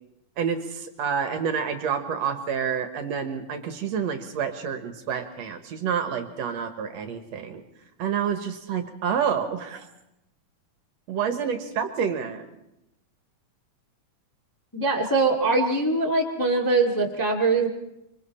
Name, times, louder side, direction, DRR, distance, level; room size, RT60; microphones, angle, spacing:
voice 1, 0.4-7.6 8.0-9.9 11.1-12.5, right 7 dB, 65° right, 7 dB, 2.2 m, -28 dB
voice 2, 14.7-17.7, right 3 dB, 10° left, -1 dB, 1.1 m, -22 dB
25.5 x 24.5 x 4.3 m, 0.87 s
omnidirectional pair, 3.5 m